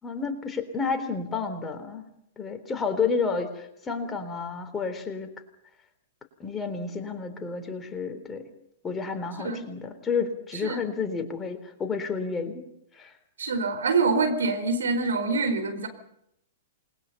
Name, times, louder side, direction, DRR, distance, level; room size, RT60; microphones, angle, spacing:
voice 1, 0.0-2.0 2.4-5.3 6.4-8.4 8.8-12.6 12.9-13.1, left 5 dB, 15° left, 6 dB, 3.6 m, -30 dB
voice 2, 13.4-15.9, right 4 dB, 65° right, 6 dB, 4.6 m, -25 dB
28.5 x 21.0 x 5.6 m, 0.76 s
figure-of-eight pair, 105°, 0 cm